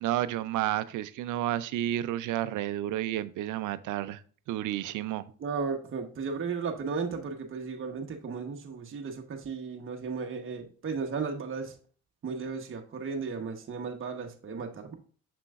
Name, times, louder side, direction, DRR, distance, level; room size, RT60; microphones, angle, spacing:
voice 1, 0.0-4.2 4.5-5.3, right 13 dB, 80° right, 0.5 m, -31 dB
voice 2, 5.4-11.8 12.2-14.9, right 5 dB, 45° right, 1.1 m, -35 dB
6.7 x 5.9 x 2.4 m
cardioid pair, 90°, 30 cm